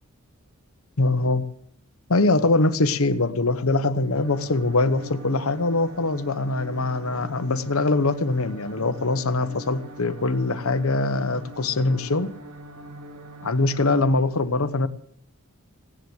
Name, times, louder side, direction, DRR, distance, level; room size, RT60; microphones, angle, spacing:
voice 1, 1.0-1.4 2.1-12.3 13.4-14.9, left 2 dB, 70° left, 11 dB, 1.0 m, -23 dB
sound 1, 4.2-14.0, right 1 dB, 80° right, 2.0 m, -42 dB
17.5 x 10.0 x 7.9 m, 0.66 s
head